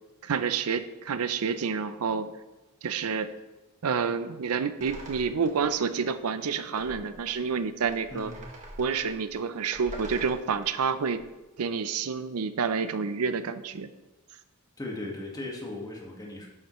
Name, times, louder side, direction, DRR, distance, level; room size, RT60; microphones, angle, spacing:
voice 1, 0.2-2.3 2.8-3.3 3.8-8.3 8.8-11.2 11.6-13.9, right 5 dB, 80° right, 11 dB, 0.5 m, -29 dB
sound 1, 4.8-5.8 6.0-6.1 6.7-11.3, right 1 dB, 35° right, 1.7 m, -45 dB
voice 2, 14.8-16.5, left 2 dB, 15° left, -2 dB, 1.6 m, -37 dB
11.5 x 7.4 x 3.1 m, 1.1 s
head